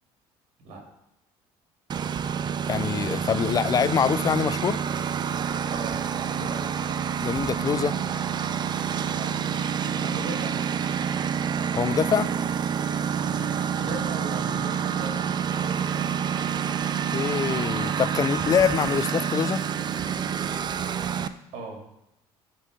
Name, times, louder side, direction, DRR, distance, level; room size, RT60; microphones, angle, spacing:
Engine, 1.9-21.3, right 7 dB, 35° right, 0.4 m, -28 dB
voice 1, 2.7-4.8 7.2-7.9 11.7-12.3 17.1-19.6, left 7 dB, 30° left, 17 dB, 0.3 m, -24 dB
voice 2, 5.7-6.7 9.2-10.6 13.2-15.3 15.6-16.1 21.5-21.9, right 2 dB, 65° right, 0 dB, 2.5 m, -38 dB
9.3 x 3.8 x 5.1 m, 0.85 s
supercardioid pair, 85°, 12 cm